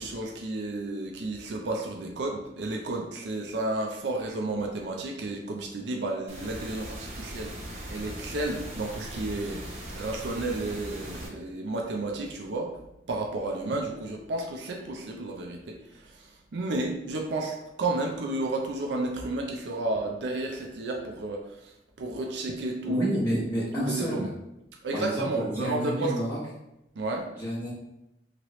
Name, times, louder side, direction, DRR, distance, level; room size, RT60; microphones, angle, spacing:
voice 1, 0.0-7.6 7.9-12.7 13.1-21.7 22.0-23.5 23.8-24.3 24.8-26.1 27.0-27.3, right 2 dB, 75° right, 1 dB, 0.5 m, -32 dB
sound 1, 6.3-11.3, right 1 dB, 40° right, 0.7 m, -39 dB
voice 2, 22.9-24.3 24.9-26.4 27.4-27.7, equal, 15° left, -12 dB, 0.9 m, -30 dB
3.0 x 2.9 x 2.9 m, 0.87 s
head